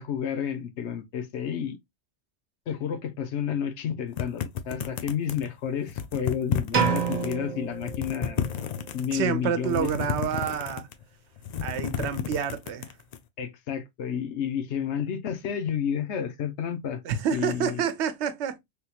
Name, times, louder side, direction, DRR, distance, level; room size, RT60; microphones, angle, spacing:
voice 1, 0.0-1.8 2.7-8.4 8.9-9.9 13.4-17.0 17.3-17.8, left 8 dB, 80° left, 1.0 m, -31 dB
sound 1, 4.2-5.5 5.9-7.3 7.7-9.2 9.7-11.0 11.4-13.2, left 8 dB, 60° left, 0.4 m, -31 dB
sound 2, 6.7-8.6, right 7 dB, 45° right, 0.9 m, -28 dB
voice 2, 9.1-10.9 11.6-12.9 17.0-18.6, right 8 dB, 85° right, 0.9 m, -28 dB
3.5 x 2.8 x 2.3 m
omnidirectional pair, 1.1 m